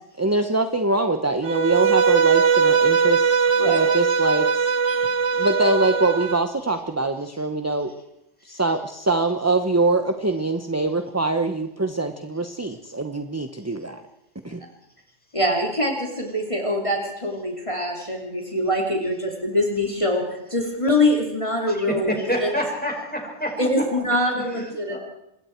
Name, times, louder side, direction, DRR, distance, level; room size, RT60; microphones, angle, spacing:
voice 1, 0.2-4.7 5.4-7.9 8.4-14.0 14.4-14.6, right 2 dB, 15° right, 7 dB, 1.0 m, -23 dB
Bowed string instrument, 1.4-6.4, right 6 dB, 70° right, 1.3 m, -20 dB
voice 2, 3.5-3.9 4.9-5.1 15.3-22.5 23.6-25.0, left 1 dB, 25° left, 0 dB, 3.0 m, -24 dB
voice 3, 21.7-23.5 24.5-25.0, equal, 5° left, 1 dB, 5.6 m, -28 dB
26.0 x 22.0 x 4.6 m, 0.86 s
omnidirectional pair, 1.3 m